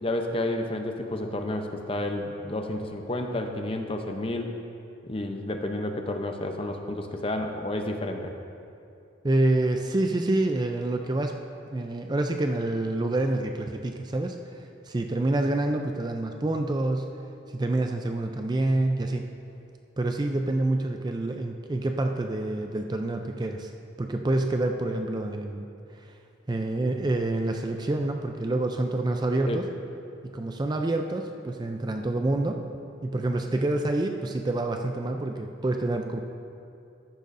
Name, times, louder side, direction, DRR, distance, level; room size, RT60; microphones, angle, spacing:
voice 1, 0.0-4.5 5.0-8.3 29.5-29.6, left 1 dB, 25° left, 4 dB, 0.6 m, -30 dB
voice 2, 9.2-11.4 11.7-17.2 17.5-19.3 20.0-23.7 24.0-25.7 26.0-26.1 26.5-29.6 30.2-32.6 33.0-36.2, right 2 dB, 20° right, 4 dB, 0.4 m, -27 dB
14.0 x 10.5 x 2.6 m, 2.6 s
head